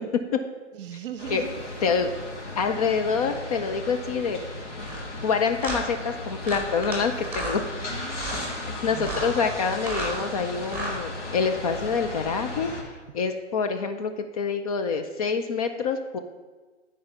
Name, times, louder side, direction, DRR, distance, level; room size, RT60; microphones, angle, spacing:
voice 1, 0.7-1.9 7.9-9.3, right 9 dB, 50° right, 10 dB, 0.9 m, -39 dB
sound 1, 1.2-12.8, left 2 dB, 75° left, 2.3 m, -36 dB
voice 2, 2.6-4.4 5.2-8.0 8.8-12.7 13.1-16.2, left 5 dB, 30° left, 6 dB, 0.5 m, -26 dB
sound 2, 4.8-5.0 5.6-5.8 6.4-7.0 7.2-7.6 8.1-8.4 9.0-9.3 9.7-10.2 10.6-11.0, right 2 dB, 5° right, 2.4 m, -32 dB
11.0 x 4.8 x 5.6 m, 1.3 s
hypercardioid pair, 130°, 36 cm